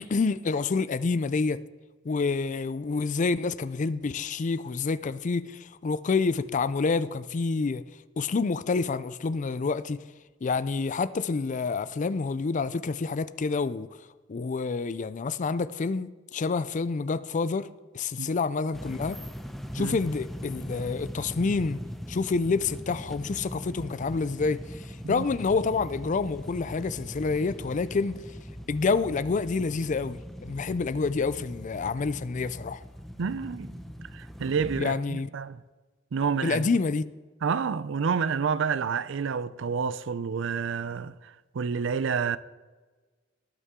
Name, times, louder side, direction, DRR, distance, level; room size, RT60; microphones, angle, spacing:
voice 1, 0.0-1.6 2.0-7.8 8.2-10.0 10.4-13.9 14.3-17.7 17.9-19.2 19.7-21.8 22.1-28.2 28.7-32.8 34.8-35.3 36.4-37.1, left 4 dB, 40° left, 0.4 m, -28 dB
sound 1, 18.7-34.8, equal, ahead, 0.7 m, -40 dB
voice 2, 33.2-33.7 34.0-35.6 36.1-36.7 37.4-42.4, right 6 dB, 70° right, 0.5 m, -29 dB
19.0 x 8.4 x 3.7 m
head